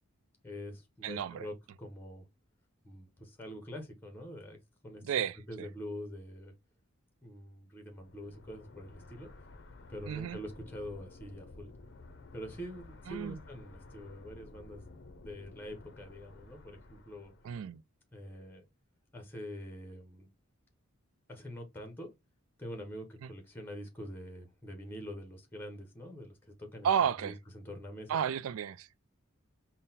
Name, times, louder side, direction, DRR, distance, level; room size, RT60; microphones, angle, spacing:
voice 1, 0.4-2.2 2.8-4.6 4.8-6.5 7.2-9.3 9.9-11.7 12.3-14.8 15.1-17.3 18.1-18.6 19.1-20.3 21.3-22.1 22.6-26.9 27.2-28.1, equal, 10° left, 0.7 m, -45 dB
voice 2, 1.0-1.5 5.0-5.7 10.1-10.4 13.1-13.4 17.4-17.8 23.2-23.3 26.8-27.3 28.1-28.9, right 8 dB, 75° right, 0.3 m, -32 dB
sound 1, 7.9-17.7, left 2 dB, 50° left, 0.5 m, -53 dB
3.8 x 2.1 x 4.0 m
head